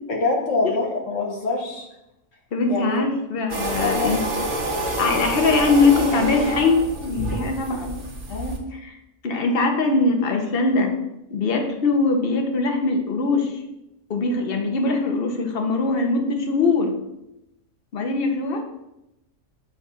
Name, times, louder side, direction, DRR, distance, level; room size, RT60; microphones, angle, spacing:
voice 1, 0.1-1.9 2.7-3.0 3.8-4.2 8.3-8.6, left 3 dB, 65° left, 0 dB, 1.2 m, -25 dB
voice 2, 2.5-4.2 5.0-8.0 8.7-8.9 9.2-10.9 11.3-13.5 14.1-16.9 17.9-18.6, left 3 dB, 50° left, 3 dB, 0.9 m, -21 dB
sound 1, 3.5-8.6, right 2 dB, 65° right, 1.4 m, -28 dB
7.2 x 2.5 x 5.6 m, 0.89 s
omnidirectional pair, 1.4 m